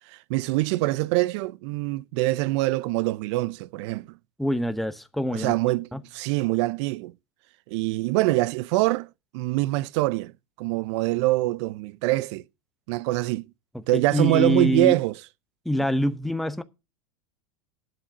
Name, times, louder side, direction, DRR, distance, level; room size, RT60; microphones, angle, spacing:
voice 1, 0.1-4.2 5.3-7.1 7.7-10.3 10.6-12.4 12.9-13.5 13.9-15.1, right 19 dB, 60° right, 0.6 m, -24 dB
voice 2, 4.4-5.5 5.9-6.0 13.7-15.0 15.6-16.6, left 1 dB, ahead, 0.8 m, -25 dB
9.4 x 7.1 x 6.2 m
hypercardioid pair, 100°, 17 cm